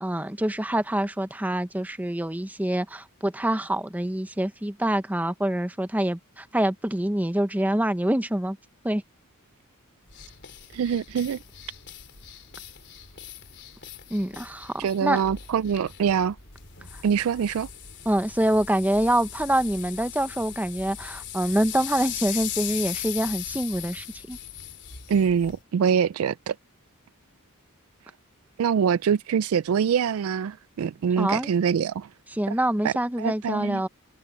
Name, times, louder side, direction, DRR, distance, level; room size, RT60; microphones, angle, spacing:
voice 1, 0.0-8.6 8.8-9.0 14.1-15.2 18.1-24.4 31.2-31.5 32.3-33.9, right 1 dB, 5° right, 0.8 m, -26 dB
sound 1, 10.1-25.6, left 10 dB, 50° left, 3.6 m, -39 dB
voice 2, 10.7-11.4 14.8-16.4 17.0-17.7 25.1-26.6 28.6-32.1 32.5-32.6 32.8-33.8, right 7 dB, 70° right, 0.3 m, -24 dB
head